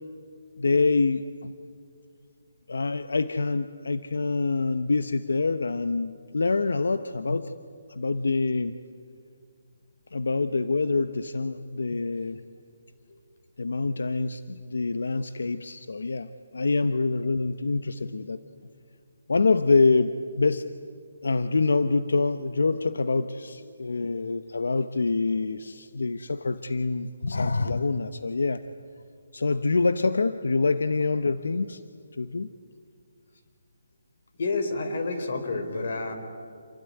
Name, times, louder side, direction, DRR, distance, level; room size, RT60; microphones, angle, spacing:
voice 1, 0.6-1.5 2.7-7.5 7.9-8.8 10.1-12.4 13.6-18.4 19.3-20.6 21.2-28.6 29.3-31.8 32.1-32.5, left 3 dB, 85° left, 11 dB, 0.9 m, -26 dB
voice 2, 34.4-36.1, left 3 dB, 50° left, 7 dB, 4.2 m, -29 dB
28.0 x 20.5 x 9.8 m, 2.3 s
hypercardioid pair, 170°, 0 cm